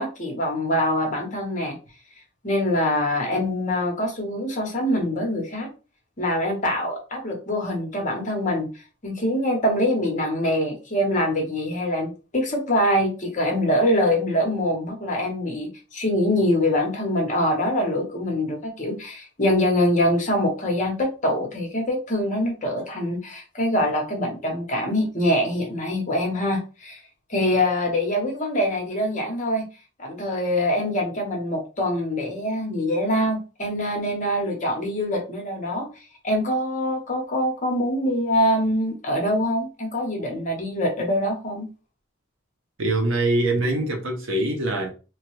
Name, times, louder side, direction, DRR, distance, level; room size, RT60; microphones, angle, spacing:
voice 1, 0.0-1.8 2.4-5.7 6.2-8.7 9.0-27.0 27.3-29.7 30.0-35.9 36.2-41.7, left 1 dB, 35° left, 0.8 m, -24 dB
voice 2, 42.8-44.9, right 2 dB, 65° right, 0.8 m, -23 dB
3.0 x 2.2 x 3.0 m
head